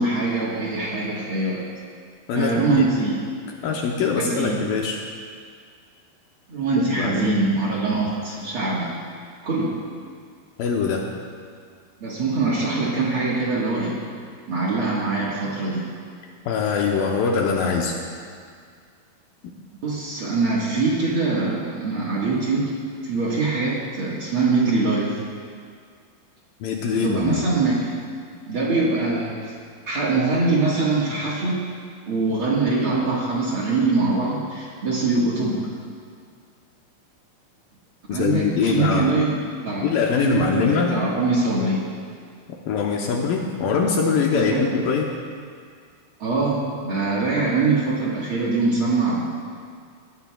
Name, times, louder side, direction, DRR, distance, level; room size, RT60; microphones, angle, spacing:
voice 1, 0.0-1.6 2.3-3.2 4.2-4.7 6.5-8.9 9.4-9.7 12.0-14.0 14.5-15.8 19.8-22.7 23.0-25.2 26.9-28.0 28.5-29.5 29.9-31.6 32.1-35.6 38.1-39.9 40.2-41.8 44.3-44.8 46.2-49.2, right 3 dB, 55° right, -5 dB, 1.4 m, -23 dB
voice 2, 2.3-2.8 3.6-5.0 7.0-7.4 10.6-11.1 16.5-18.0 26.6-27.4 38.1-39.1 39.8-41.0 42.7-45.1, left 5 dB, 75° left, 0 dB, 2.2 m, -23 dB
19.5 x 13.5 x 2.3 m, 2.1 s
omnidirectional pair, 4.7 m